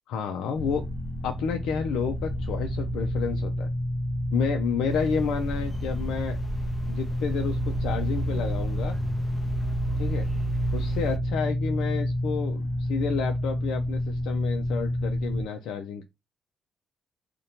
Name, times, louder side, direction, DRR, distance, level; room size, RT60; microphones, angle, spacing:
voice 1, 0.1-0.8 1.2-3.7 4.3-6.4 6.9-9.0 10.0-10.3 10.7-16.0, left 6 dB, 85° left, 0.3 m, -30 dB
sound 1, 0.6-15.4, equal, 65° left, 0.7 m, -29 dB
sound 2, 4.9-11.2, equal, 10° left, 0.6 m, -38 dB
2.7 x 2.1 x 2.7 m
cardioid pair, 90°, 0 cm